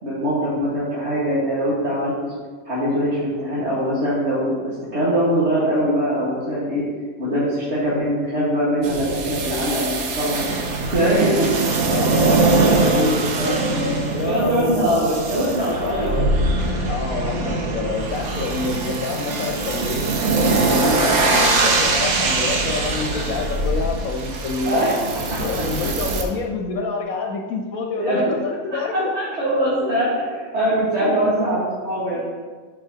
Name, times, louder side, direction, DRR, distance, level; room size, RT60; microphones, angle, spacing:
voice 1, 0.0-2.3 2.7-6.8 7.2-10.6 10.9-11.5 13.4-16.2 24.6-25.0 25.3-25.4 28.0-28.2 28.7-32.3, equal, 50° right, -9 dB, 1.8 m, -22 dB
sound 1, 8.8-26.2, right 3 dB, 80° right, 1.3 m, -22 dB
voice 2, 11.9-14.9 15.8-16.3 16.9-20.1 20.4-24.9 25.2-29.1 29.8-29.9 31.0-31.3 32.0-32.3, left 4 dB, 75° left, 2 dB, 1.2 m, -27 dB
11.5 x 4.7 x 2.8 m, 1.5 s
omnidirectional pair, 1.5 m